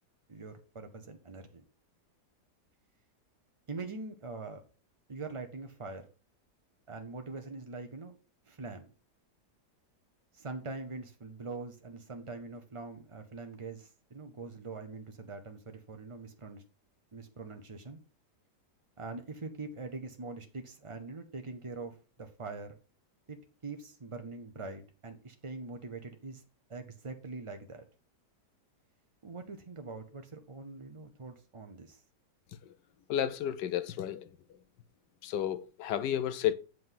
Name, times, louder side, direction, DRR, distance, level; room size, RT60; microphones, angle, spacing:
voice 1, 0.3-1.6 3.7-4.6 5.1-6.1 6.9-8.1 8.5-8.9 10.3-16.6 17.1-18.0 19.0-22.8 23.3-26.4 26.7-27.8 29.2-32.0, right 3 dB, 45° right, 0.4 m, -43 dB
voice 2, 33.1-34.2 35.2-36.5, left 10 dB, 85° left, 1.3 m, -31 dB
7.8 x 5.4 x 5.5 m
omnidirectional pair, 1.8 m